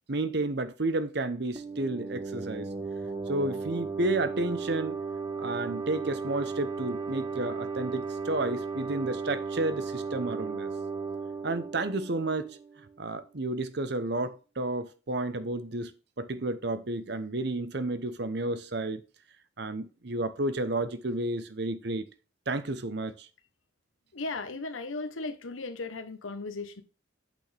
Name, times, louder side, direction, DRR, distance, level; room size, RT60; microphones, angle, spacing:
voice 1, 0.1-2.7 3.3-5.0 5.4-10.7 11.4-12.6 13.0-19.0 19.6-22.1 22.5-23.3, right 2 dB, 55° right, 0.8 m, -31 dB
sound 1, 1.6-13.0, right 4 dB, 20° right, 0.8 m, -35 dB
voice 2, 24.1-26.8, left 3 dB, 85° left, 1.0 m, -36 dB
8.4 x 6.3 x 3.4 m
head